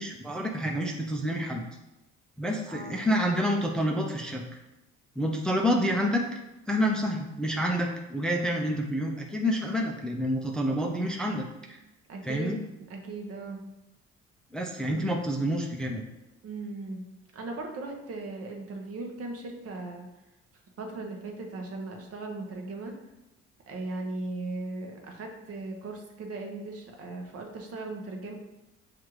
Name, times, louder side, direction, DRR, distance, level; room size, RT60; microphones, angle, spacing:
voice 1, 0.0-1.6 2.4-4.4 5.2-6.2 6.7-11.4 11.7-11.8 12.2-12.6 14.5-16.0, equal, 5° left, 1 dB, 0.4 m, -28 dB
voice 2, 2.7-3.0 12.1-12.6 12.9-13.6 14.9-15.0 16.4-17.0 17.3-20.1 20.8-23.0 23.7-28.4, right 2 dB, 50° right, 2 dB, 0.9 m, -38 dB
6.3 x 2.5 x 3.0 m, 0.97 s
cardioid pair, 90°, 30 cm